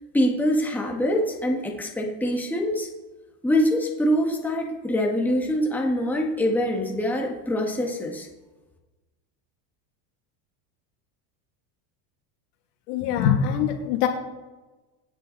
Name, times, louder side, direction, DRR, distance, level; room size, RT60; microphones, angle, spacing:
voice 1, 0.1-2.9 3.4-8.3, equal, 5° left, -1 dB, 1.8 m, -24 dB
voice 2, 12.9-14.1, left 8 dB, 75° left, 3 dB, 2.7 m, -23 dB
27.0 x 9.8 x 4.1 m, 1.2 s
cardioid pair, 165°, 47 cm